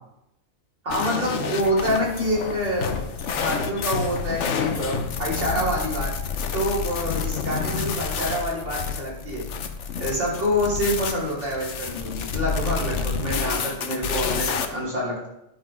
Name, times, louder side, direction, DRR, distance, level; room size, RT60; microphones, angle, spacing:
voice 1, 0.8-9.4 10.0-15.3, equal, 80° right, -5 dB, 3.6 m, -27 dB
sound 1, 0.9-14.7, left 5 dB, 75° left, 1.1 m, -29 dB
10.0 x 5.9 x 4.9 m, 0.83 s
omnidirectional pair, 1.2 m